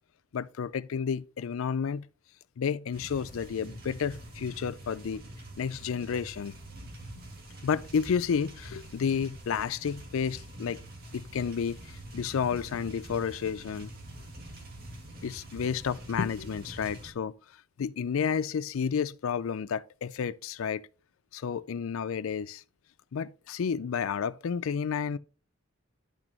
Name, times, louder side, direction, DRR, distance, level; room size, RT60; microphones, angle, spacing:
voice 1, 0.3-2.1 2.6-5.2 5.6-6.5 7.6-10.8 11.1-13.9 15.2-17.3 17.8-20.8 21.3-22.6 23.1-25.2, left 6 dB, 70° left, 0.4 m, -31 dB
sound 1, 2.9-17.1, right 1 dB, 45° right, 2.2 m, -46 dB
10.5 x 6.0 x 3.0 m
head